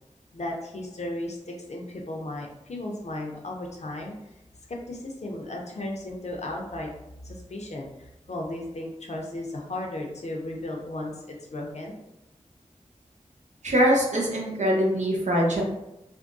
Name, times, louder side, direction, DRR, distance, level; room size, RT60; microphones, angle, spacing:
voice 1, 0.3-4.1 4.7-6.9 7.2-11.9, left 1 dB, 65° left, 0 dB, 0.6 m, -35 dB
voice 2, 13.6-15.6, equal, 75° right, -2 dB, 0.8 m, -23 dB
3.4 x 2.2 x 2.6 m, 0.89 s
wide cardioid pair, 70°, 12 cm